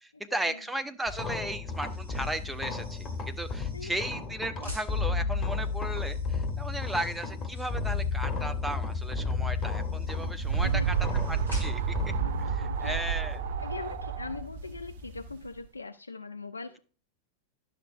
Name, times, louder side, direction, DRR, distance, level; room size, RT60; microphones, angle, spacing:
voice 1, 0.0-10.9 11.3-11.9 12.6-13.4, right 1 dB, 5° right, 7 dB, 0.7 m, -36 dB
sound 1, 0.9-12.1, left 1 dB, 75° right, 2.8 m, -49 dB
sound 2, 1.1-15.3, left 4 dB, 25° left, 1.2 m, -33 dB
sound 3, 9.9-15.5, right 10 dB, 55° right, 0.5 m, -31 dB
voice 2, 10.6-11.1 12.2-13.0 13.6-16.8, left 3 dB, 80° left, 7 dB, 0.4 m, -41 dB
11.0 x 6.7 x 2.6 m, 0.39 s
figure-of-eight pair, 90°, 0 cm